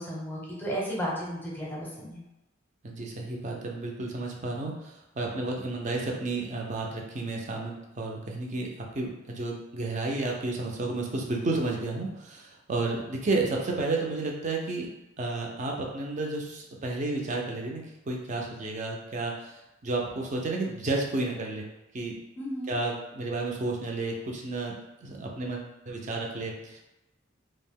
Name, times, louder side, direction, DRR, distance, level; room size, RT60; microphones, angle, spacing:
voice 1, 0.0-2.2 22.4-22.7, equal, 10° left, -5 dB, 0.7 m, -34 dB
voice 2, 2.8-8.7 8.9-14.9 15.2-21.7 21.9-22.2 22.7-24.7 25.0-26.8, right 2 dB, 40° right, 0 dB, 0.5 m, -32 dB
2.4 x 2.1 x 3.5 m, 0.95 s
head